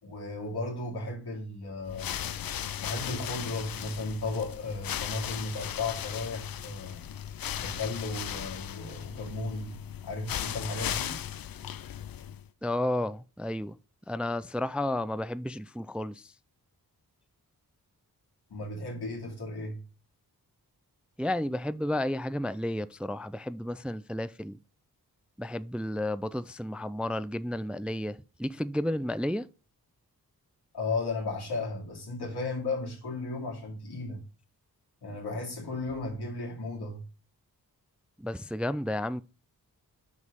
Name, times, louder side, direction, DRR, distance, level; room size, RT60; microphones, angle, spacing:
voice 1, 0.0-2.2 2.8-7.0 7.6-9.7 10.0-11.2 18.5-19.8 30.7-34.2 35.0-37.0, left 3 dB, 85° left, 2.7 m, -35 dB
sound 1, 1.8-12.5, left 10 dB, 65° left, 0.5 m, -37 dB
voice 2, 12.6-13.8 14.1-16.3 21.2-24.6 25.4-29.5 38.2-39.2, left 1 dB, 5° right, 0.3 m, -32 dB
6.6 x 5.3 x 5.1 m
cardioid pair, 50°, 38 cm